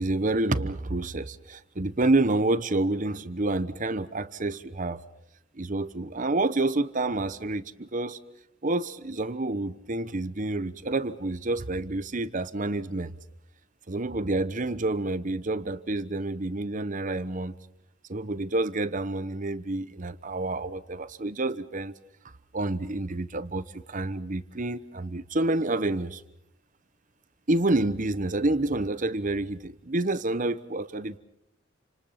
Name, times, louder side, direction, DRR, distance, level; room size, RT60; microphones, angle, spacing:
voice 1, 0.0-5.0 5.5-8.2 8.6-13.1 13.9-17.5 18.1-22.0 22.5-26.2 27.5-31.2, right 2 dB, 40° right, 14 dB, 1.0 m, -28 dB
30.0 x 26.5 x 5.8 m, 0.78 s
head